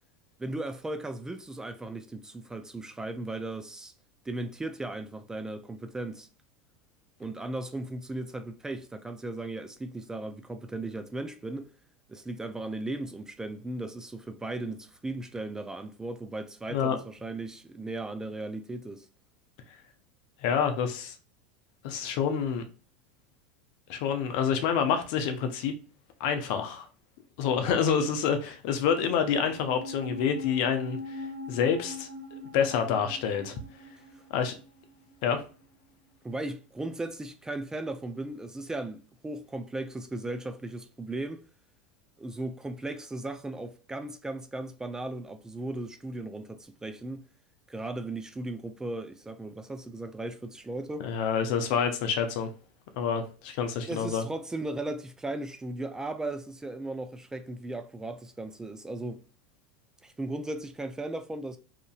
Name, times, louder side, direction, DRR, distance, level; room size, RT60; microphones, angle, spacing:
voice 1, 0.4-3.9 4.3-6.3 7.2-11.7 12.1-19.1 27.6-27.8 34.1-34.2 36.2-41.4 42.2-47.2 47.7-51.1 53.9-59.2 60.0-61.6, right 2 dB, 10° right, 0.4 m, -37 dB
voice 2, 20.4-21.1 21.8-22.6 23.9-25.7 26.2-26.9 27.4-32.1 32.5-33.6 34.3-34.6 35.2-35.4 51.0-52.5 53.0-54.2, left 7 dB, 60° left, 0.6 m, -27 dB
sound 1, 29.3-35.9 36.1-36.2, left 2 dB, 85° right, 1.0 m, -42 dB
2.8 x 2.5 x 2.4 m
hypercardioid pair, 90°, 5 cm